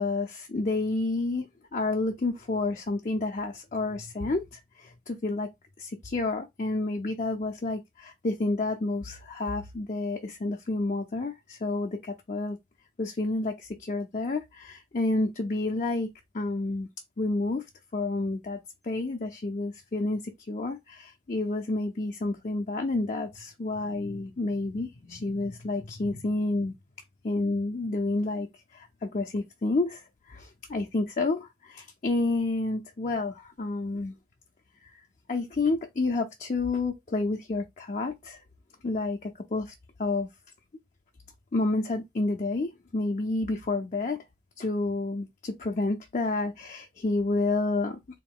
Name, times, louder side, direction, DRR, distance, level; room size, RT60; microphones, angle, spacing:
voice 1, 0.0-5.5 5.8-12.6 13.0-16.1 16.3-16.9 17.2-17.6 17.9-26.7 27.2-28.5 28.7-34.1 34.8-35.0 35.3-38.4 38.8-39.7 40.0-40.3 41.5-44.2 44.6-48.0, left 2 dB, 40° left, 0.5 m, -30 dB
3.8 x 2.6 x 3.6 m
head